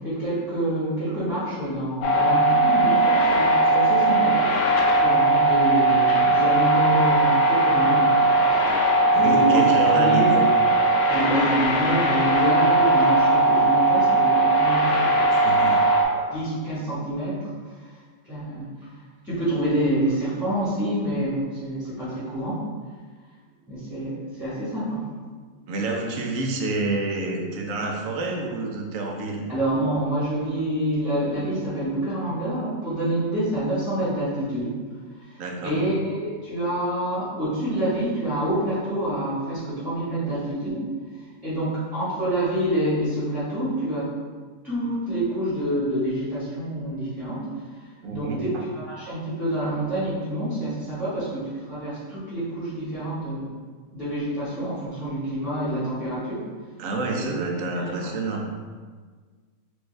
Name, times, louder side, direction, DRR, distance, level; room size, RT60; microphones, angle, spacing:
voice 1, 0.0-8.3 9.2-10.5 11.1-15.6 16.1-17.5 18.3-18.7 19.2-22.6 23.7-25.0 29.5-34.7 35.3-40.9 41.4-44.1 44.6-47.5 48.1-53.5 53.9-56.4 57.2-57.4 57.8-57.9, right 1 dB, ahead, -12 dB, 1.2 m, -27 dB
sound 1, 2.0-16.0, right 2 dB, 75° left, 1.1 m, -19 dB
voice 2, 9.1-10.4 15.3-15.8 25.7-29.4 35.4-35.8 48.0-48.6 56.8-58.5, right 3 dB, 70° right, 1 dB, 1.0 m, -28 dB
4.5 x 2.6 x 3.2 m, 1.5 s
omnidirectional pair, 1.6 m